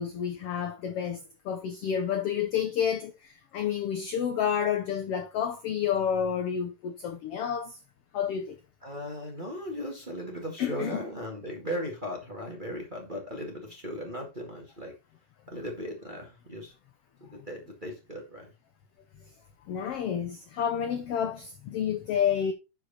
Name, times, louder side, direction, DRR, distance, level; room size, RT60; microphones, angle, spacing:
voice 1, 0.0-7.8 8.1-8.6 10.6-11.0 19.7-22.5, left 8 dB, 70° left, 1.4 m, -30 dB
voice 2, 8.8-14.9 15.5-16.7 17.3-18.5, equal, 20° right, 1.6 m, -37 dB
11.0 x 4.7 x 4.1 m
omnidirectional pair, 3.7 m